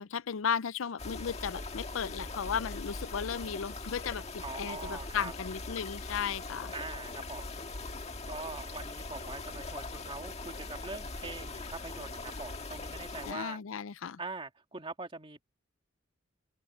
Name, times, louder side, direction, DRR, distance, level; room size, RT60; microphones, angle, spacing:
voice 1, 0.0-6.7 13.2-14.2, left 7 dB, 85° left, 0.5 m, -35 dB
sound 1, 1.0-13.3, left 3 dB, 35° left, 1.7 m, -41 dB
voice 2, 4.4-5.3 6.7-7.5 8.3-13.6 14.2-15.4, right 3 dB, 25° right, 2.5 m, -43 dB
open air
head